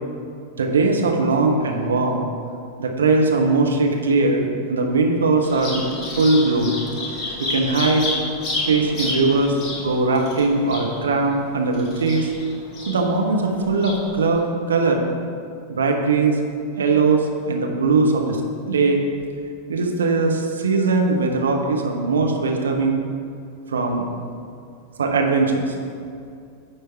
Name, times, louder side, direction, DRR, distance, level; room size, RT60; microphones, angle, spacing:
voice 1, 0.6-2.3 2.8-5.8 6.2-6.7 7.4-8.1 8.7-12.3 12.9-15.0 15.7-16.4 16.8-18.4 18.7-19.0 19.7-23.0 23.7-24.1 25.0-25.7, right 3 dB, 70° right, 2 dB, 0.7 m, -20 dB
Bird vocalization bird call bird song, 5.4-14.4, left 2 dB, 30° left, 1.7 m, -31 dB
9.7 x 3.4 x 4.5 m, 2.3 s
figure-of-eight pair, 90°, 0 cm